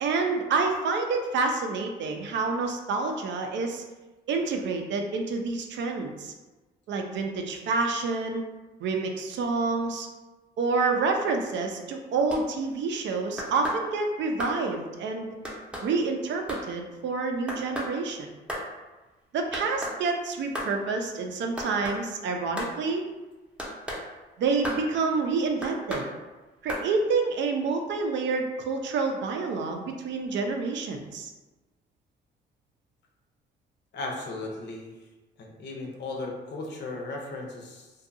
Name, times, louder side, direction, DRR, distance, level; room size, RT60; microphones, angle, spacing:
voice 1, 0.0-3.8 4.3-6.3 6.9-8.4 8.8-10.1 10.6-15.3 15.8-18.3 19.3-23.0 24.4-26.1 26.6-31.3, right 4 dB, 65° right, 3 dB, 0.4 m, -28 dB
sound 1, 12.3-12.4 13.4-13.8 14.4-14.6 15.5-15.9 16.5-16.6 17.5-17.9 18.5-18.7 19.5-20.0 20.6-20.7 21.6-22.0 22.6-22.7 23.6-24.0 24.6-24.8 25.6-26.1 26.7-26.9, equal, 5° right, 0.6 m, -33 dB
voice 2, 33.9-35.0 35.4-37.9, left 2 dB, 60° left, 0 dB, 0.6 m, -36 dB
2.6 x 2.3 x 2.6 m, 1.2 s
cardioid pair, 90°, 20 cm